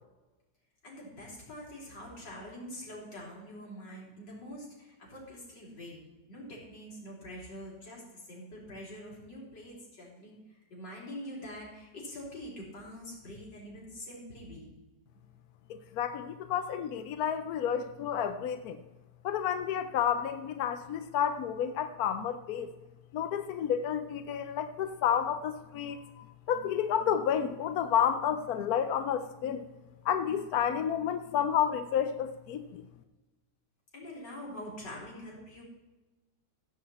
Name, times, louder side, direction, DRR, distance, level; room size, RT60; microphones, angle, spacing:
voice 1, 0.8-6.0 6.3-14.7 33.9-35.6, equal, 85° left, -4 dB, 4.4 m, -45 dB
voice 2, 15.7-18.8 19.2-22.7 23.1-29.7 30.0-32.8, left 8 dB, 65° left, 10 dB, 1.1 m, -30 dB
15.5 x 7.8 x 4.2 m, 1.1 s
omnidirectional pair, 1.9 m